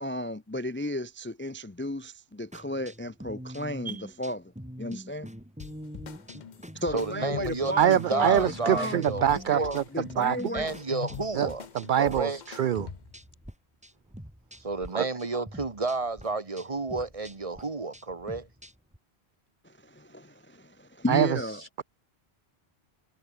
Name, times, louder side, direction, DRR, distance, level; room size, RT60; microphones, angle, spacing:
voice 1, 0.0-4.5 4.8-5.3 6.7-9.0 9.5-10.7 19.6-21.8, left 1 dB, 15° left, 0.5 m, -34 dB
sound 1, 2.5-13.5 13.8-14.9 15.2-19.0, equal, 5° right, 5.6 m, -44 dB
sound 2, 5.6-13.2, left 7 dB, 45° left, 0.8 m, -43 dB
voice 2, 6.9-9.2 9.5-9.8 10.5-11.7 12.0-12.4 14.6-18.5, right 3 dB, 30° right, 1.4 m, -31 dB
voice 3, 7.8-10.4 11.4-12.9 14.9-15.1 21.1-21.3 21.6-21.8, right 10 dB, 55° right, 0.6 m, -25 dB
omnidirectional pair, 1.1 m